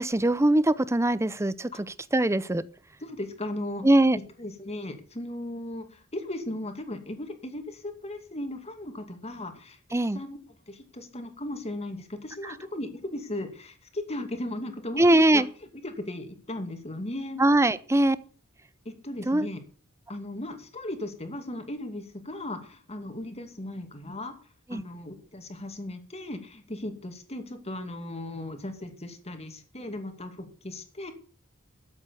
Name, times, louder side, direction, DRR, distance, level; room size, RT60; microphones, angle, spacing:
voice 1, 0.0-1.7 2.1-2.6 3.8-4.2 9.9-10.2 12.4-12.5 15.0-15.5 17.4-18.2 19.3-19.5 24.7-24.8, right 1 dB, 15° right, 0.6 m, -21 dB
voice 2, 3.0-3.8 4.1-9.8 10.1-10.4 10.7-15.4 15.8-17.4 18.9-19.6 20.1-24.3 24.7-31.1, left 1 dB, 30° left, 2.4 m, -37 dB
13.0 x 8.4 x 7.0 m
head